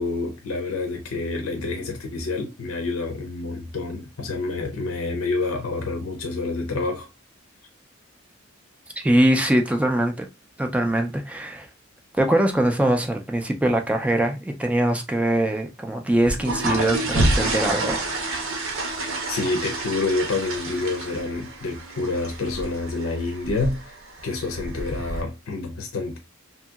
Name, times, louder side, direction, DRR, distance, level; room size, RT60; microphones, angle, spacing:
voice 1, 0.0-7.1 19.3-24.0 24.2-26.2, left 3 dB, 75° left, 0.6 m, -28 dB
voice 2, 9.0-10.3 10.6-11.7 12.2-18.0, right 1 dB, 5° right, 0.3 m, -22 dB
sound 1, 16.1-25.2, right 2 dB, 75° right, 0.9 m, -28 dB
2.8 x 2.7 x 2.3 m
head